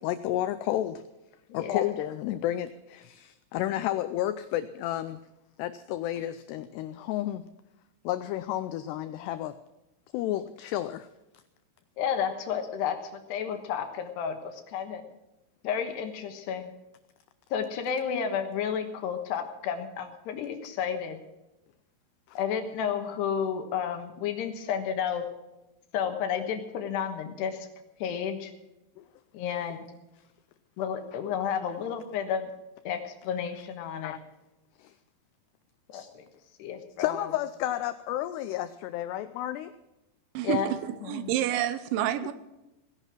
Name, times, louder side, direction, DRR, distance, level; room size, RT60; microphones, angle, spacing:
voice 1, 0.0-1.0 1.5-5.2 5.6-7.4 8.0-9.6 10.1-11.1 22.3-22.4 29.0-29.1 34.0-34.2 34.8-34.9 35.9-36.1 37.0-39.7, left 13 dB, 85° left, 12 dB, 2.4 m, -31 dB
voice 2, 1.5-1.9 12.0-15.0 15.6-16.7 17.5-21.2 22.3-25.3 25.9-27.7 28.0-28.5 29.3-29.9 30.8-32.5 32.8-34.1 35.9-36.3 36.6-37.3 40.4-40.7 41.0-41.3, left 7 dB, 70° left, 6 dB, 3.1 m, -31 dB
voice 3, 40.3-40.8 41.1-42.3, right 11 dB, 80° right, 12 dB, 3.2 m, -28 dB
18.0 x 11.0 x 6.1 m, 0.97 s
omnidirectional pair, 5.5 m